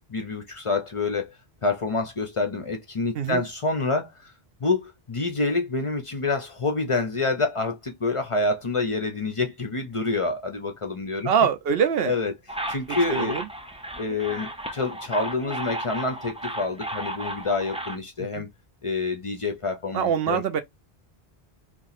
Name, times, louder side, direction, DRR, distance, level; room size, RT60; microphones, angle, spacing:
voice 1, 0.1-1.3 1.6-4.3 4.6-11.3 12.1-12.3 12.7-13.4 14.0-18.5 18.8-20.4, left 3 dB, 40° left, 0.5 m, -27 dB
voice 2, 11.2-12.1 13.1-13.5 18.2-18.4 19.9-20.6, right 7 dB, 75° right, 0.8 m, -24 dB
sound 1, 12.5-18.0, right 1 dB, 10° right, 0.4 m, -34 dB
2.8 x 2.5 x 4.0 m
omnidirectional pair, 1.0 m